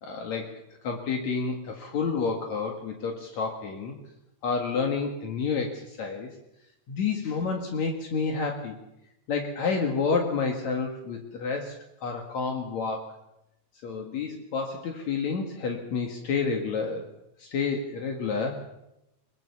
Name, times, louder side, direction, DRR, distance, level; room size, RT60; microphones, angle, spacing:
voice 1, 0.0-4.0 4.4-6.3 6.9-8.8 9.3-11.7 12.0-13.1 13.8-17.1 17.4-18.6, left 5 dB, 70° left, 2 dB, 3.1 m, -29 dB
22.5 x 22.5 x 7.0 m, 0.88 s
omnidirectional pair, 3.4 m